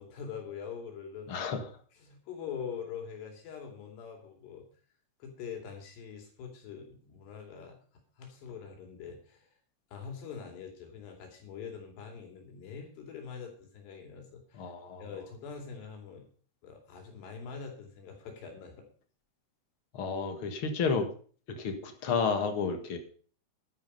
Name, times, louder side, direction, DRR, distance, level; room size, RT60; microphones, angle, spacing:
voice 1, 0.0-1.5 2.0-4.7 5.2-7.8 8.2-9.6 9.9-14.7 15.0-16.3 16.6-18.9, left 6 dB, 85° left, 3 dB, 4.9 m, -44 dB
voice 2, 1.3-1.6 14.5-15.0 19.9-21.1 21.5-23.0, left 5 dB, 50° left, 7 dB, 1.7 m, -31 dB
11.5 x 10.5 x 5.4 m, 0.43 s
omnidirectional pair, 4.7 m